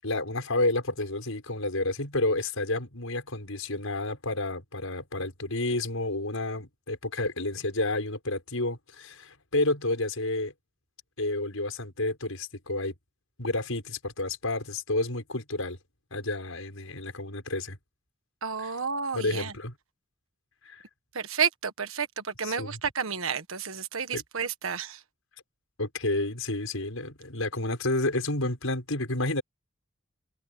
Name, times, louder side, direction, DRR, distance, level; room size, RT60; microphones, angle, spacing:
voice 1, 0.0-10.5 11.2-12.9 13.4-15.8 16.1-17.8 18.6-18.7 19.1-19.7 20.6-20.8 22.4-22.8 24.1-24.2 25.8-29.4, left 2 dB, 75° left, 6.3 m, -30 dB
voice 2, 18.4-19.5 21.1-25.0, right 6 dB, 75° right, 1.5 m, -31 dB
head